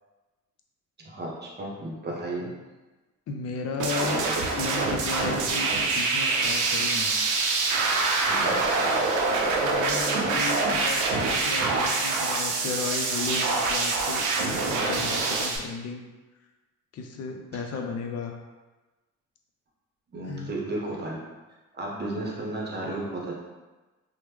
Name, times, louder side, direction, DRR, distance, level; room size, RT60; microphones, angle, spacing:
voice 1, 1.0-2.5 8.2-8.6 20.1-21.2 21.7-23.3, right 2 dB, 35° right, -2 dB, 0.8 m, -33 dB
voice 2, 3.3-7.2 9.6-16.0 16.9-18.4 20.2-20.5, left 4 dB, 55° left, 4 dB, 0.5 m, -34 dB
sound 1, 3.8-15.6, right 3 dB, 80° right, 0.5 m, -25 dB
3.0 x 2.1 x 3.4 m, 1.2 s
cardioid pair, 90°, 30 cm